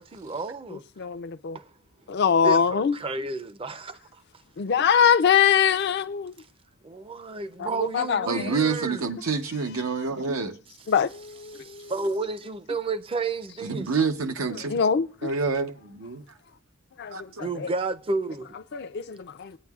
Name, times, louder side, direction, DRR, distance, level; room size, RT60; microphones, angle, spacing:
voice 1, 0.0-0.8 1.5-1.7 2.4-4.0 6.8-9.1 11.5-13.9 17.4-18.5, right 3 dB, 25° right, 0.5 m, -31 dB
voice 2, 0.7-1.6 2.1-2.9 4.6-6.3 7.6-8.6 10.9-11.9 14.7-15.3 17.0-17.7 18.7-19.6, left 7 dB, 55° left, 0.4 m, -23 dB
voice 3, 8.3-10.6 13.6-14.7 15.2-16.2 17.1-17.4, right 4 dB, 85° right, 0.8 m, -27 dB
20.0 x 8.9 x 2.3 m
head